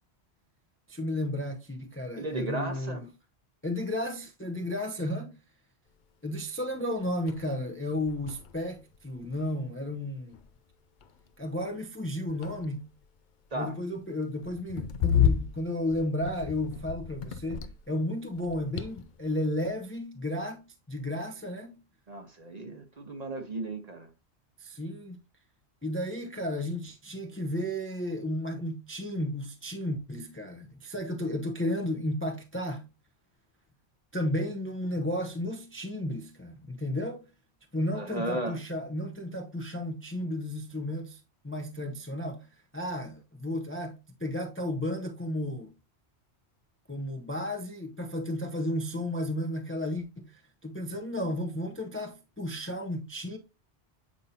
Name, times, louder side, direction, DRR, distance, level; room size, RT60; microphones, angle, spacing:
voice 1, 0.9-3.1 3.6-5.3 6.2-10.4 11.4-12.9 13.5-21.7 24.6-25.2 25.8-32.8 34.1-37.3 37.7-42.5 42.7-45.7 46.9-53.4, left 1 dB, 15° left, 0.6 m, -33 dB
voice 2, 2.1-3.0 13.5-13.8 22.1-24.1 37.9-38.6, right 2 dB, 40° right, 1.0 m, -35 dB
sound 1, 6.7-6.8 7.3-7.5 7.8-9.5 10.3-10.7 11.0-11.3 12.1-13.0 14.4-18.0 18.3-19.3, left 9 dB, 55° left, 0.6 m, -31 dB
8.4 x 5.3 x 2.8 m
omnidirectional pair, 1.1 m